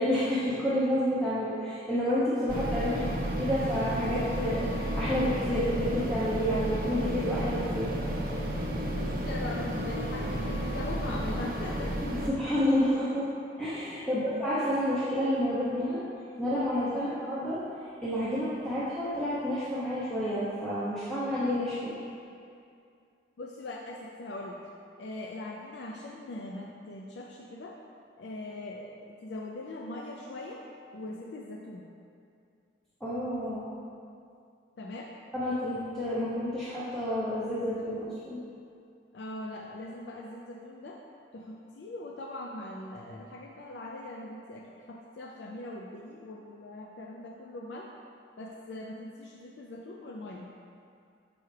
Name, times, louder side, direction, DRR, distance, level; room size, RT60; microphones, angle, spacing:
voice 1, 0.0-3.1 3.4-7.9 12.0-13.3 13.6-16.0 16.4-17.6 18.0-22.0 33.0-33.7 35.3-38.4, equal, 5° left, -11 dB, 0.7 m, -29 dB
sound 1, 2.5-12.3, equal, 50° right, 0.7 m, -32 dB
voice 2, 8.9-12.0 14.1-14.2 16.9-17.1 23.4-24.7 25.0-27.8 28.2-29.0 29.2-30.6 30.9-31.9 34.8-35.1 39.1-41.0 41.3-47.9 48.4-50.5, left 2 dB, 70° left, -1 dB, 0.4 m, -41 dB
6.9 x 4.6 x 3.2 m, 2.4 s
head